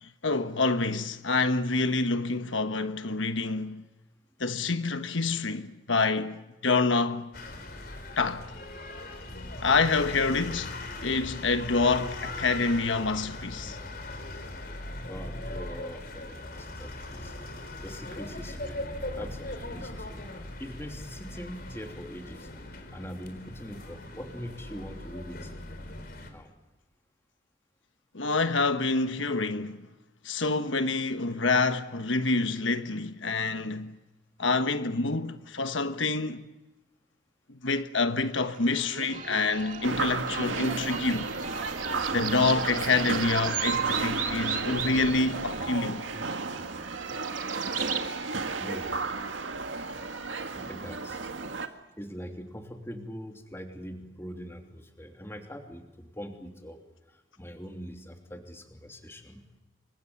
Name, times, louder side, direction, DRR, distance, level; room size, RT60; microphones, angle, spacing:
voice 1, 0.0-3.8 4.4-6.4 6.6-7.3 8.2-8.4 9.6-10.7 11.0-13.8 28.1-29.8 30.2-33.9 34.4-36.4 37.5-41.3 42.1-46.0, left 3 dB, 85° left, 1.3 m, -27 dB
sound 1, 7.3-26.3, left 2 dB, 50° left, 4.2 m, -39 dB
voice 2, 15.0-17.3 17.8-18.9 19.1-20.3 20.6-25.5 26.3-26.5 48.6-49.0 50.5-51.2 51.6-56.8 57.1-59.5, equal, 15° left, 3.0 m, -43 dB
sound 2, 38.4-48.0, right 6 dB, 40° right, 2.3 m, -37 dB
sound 3, 39.8-51.7, right 4 dB, 85° right, 1.9 m, -33 dB
28.5 x 25.0 x 7.2 m
head